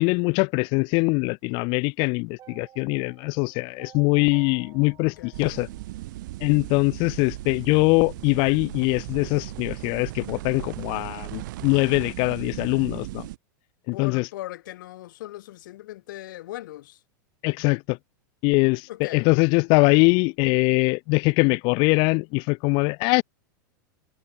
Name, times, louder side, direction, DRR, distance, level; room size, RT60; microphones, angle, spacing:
voice 1, 0.0-5.7 6.4-13.3 13.9-14.3 17.4-18.0 18.4-23.2, left 31 dB, 45° left, 0.4 m, -22 dB
sound 1, 2.4-6.6, right 11 dB, 35° right, 4.1 m, -53 dB
sound 2, 4.6-9.7, left 9 dB, 25° left, 6.1 m, -56 dB
sound 3, 5.3-13.4, right 18 dB, 65° right, 0.9 m, -37 dB
voice 2, 13.9-17.0 18.9-19.3, left 15 dB, 70° left, 1.3 m, -39 dB
hypercardioid pair, 120°, 11 cm